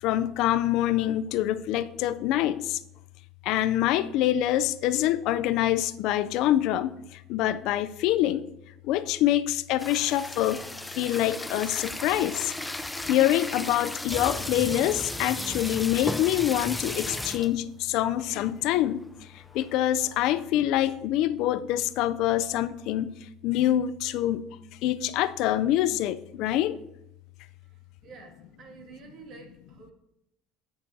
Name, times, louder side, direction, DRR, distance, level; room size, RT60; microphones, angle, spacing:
voice 1, 0.0-2.8 3.4-8.5 8.8-10.6 10.9-12.5 13.1-19.0 19.5-23.2 23.4-24.5 24.8-26.8, left 13 dB, 65° left, 0.4 m, -25 dB
sound 1, 9.8-17.6 18.2-18.3 18.5-18.7 19.2-20.4, left 2 dB, 10° left, 0.5 m, -35 dB
voice 2, 28.0-29.9, right 4 dB, 50° right, 2.1 m, -48 dB
17.0 x 6.7 x 2.8 m
supercardioid pair, 110°, 0 cm